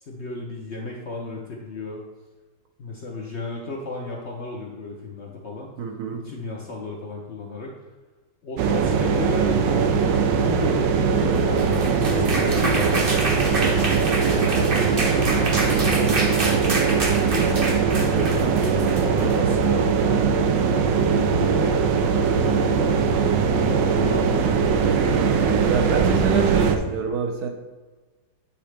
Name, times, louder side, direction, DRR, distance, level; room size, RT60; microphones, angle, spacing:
voice 1, 0.1-2.0 2.8-5.7 6.1-7.7 8.4-9.9 10.3-13.8 14.3-16.4 17.3-20.3 20.7-24.4, left 2 dB, 55° left, -2 dB, 0.8 m, -34 dB
voice 2, 5.8-6.3 17.2-17.5 25.4-27.5, right 5 dB, 65° right, 3 dB, 1.1 m, -26 dB
sound 1, 8.6-26.8, right 5 dB, 85° right, 1.3 m, -21 dB
sound 2, 11.4-19.6, right 2 dB, 40° right, 0.9 m, -28 dB
8.8 x 3.9 x 3.2 m, 1.3 s
omnidirectional pair, 1.9 m